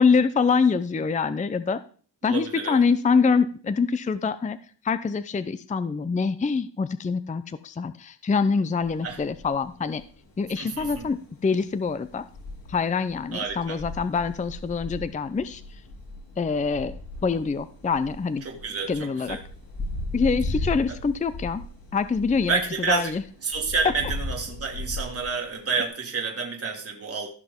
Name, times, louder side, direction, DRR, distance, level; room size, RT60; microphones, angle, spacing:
voice 1, 0.0-1.8 2.2-4.6 4.8-10.0 10.4-12.2 12.7-15.6 16.4-16.9 17.2-18.4 18.9-19.4 20.1-21.6 21.9-22.6 22.9-23.2, left 5 dB, 20° left, 13 dB, 0.5 m, -25 dB
voice 2, 2.2-2.8 9.0-9.2 10.6-11.0 13.3-13.8 18.4-19.4 20.9-21.0 22.5-27.3, right 5 dB, 35° right, 1 dB, 1.7 m, -29 dB
sound 1, 8.8-25.9, left 2 dB, 80° left, 5.6 m, -37 dB
15.0 x 5.8 x 3.7 m, 0.43 s
cardioid pair, 85°, 43 cm